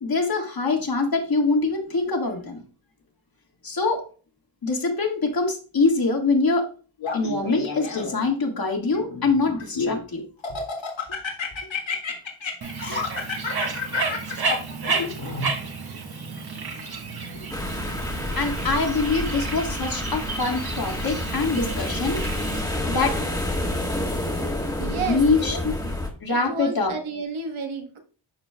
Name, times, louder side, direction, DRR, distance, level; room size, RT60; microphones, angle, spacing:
voice 1, 0.0-2.6 3.6-4.0 4.6-6.7 7.1-10.2 18.4-22.2 22.9-23.2 25.0-25.7 26.2-26.9, left 3 dB, 45° left, 2 dB, 1.8 m, -24 dB
Laughter, 7.0-8.3 8.9-10.0 10.4-15.5, left 4 dB, 70° left, 2.0 m, -30 dB
Bird, 12.6-22.6, right 4 dB, 50° right, 1.4 m, -32 dB
sound 1, 17.5-26.1, left 1 dB, 10° left, 1.4 m, -29 dB
voice 2, 24.8-25.4 26.3-28.0, right 4 dB, 80° right, 4 dB, 1.4 m, -31 dB
12.0 x 4.4 x 2.2 m, 0.39 s
wide cardioid pair, 95°, 48 cm